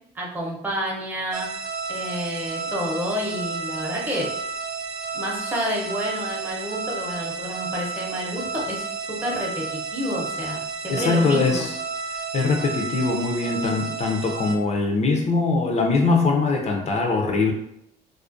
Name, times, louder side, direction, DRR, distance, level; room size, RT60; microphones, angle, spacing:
voice 1, 0.1-1.5 1.9-4.3 5.1-11.7, equal, 10° right, -3 dB, 0.7 m, -29 dB
sound 1, 1.3-14.6, right 4 dB, 70° right, 0.5 m, -32 dB
voice 2, 10.9-11.7 12.3-17.5, left 3 dB, 40° left, 1 dB, 0.5 m, -22 dB
2.4 x 2.1 x 2.5 m, 0.75 s
cardioid pair, 110°, 17 cm